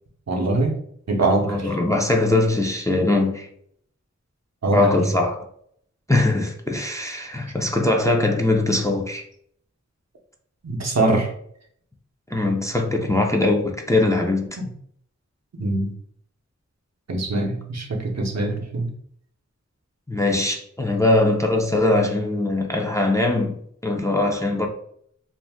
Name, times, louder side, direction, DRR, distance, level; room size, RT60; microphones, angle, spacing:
voice 1, 0.3-0.8 1.1-1.8 4.6-5.1 10.6-11.3 14.6-14.7 15.6-15.9 17.1-18.9, right 2 dB, 65° right, 0.7 m, -23 dB
voice 2, 1.4-3.5 4.7-5.5 6.1-9.2 12.3-14.6 20.1-24.7, left 2 dB, 10° left, 0.4 m, -21 dB
2.6 x 2.1 x 3.4 m
wide cardioid pair, 45°, 29 cm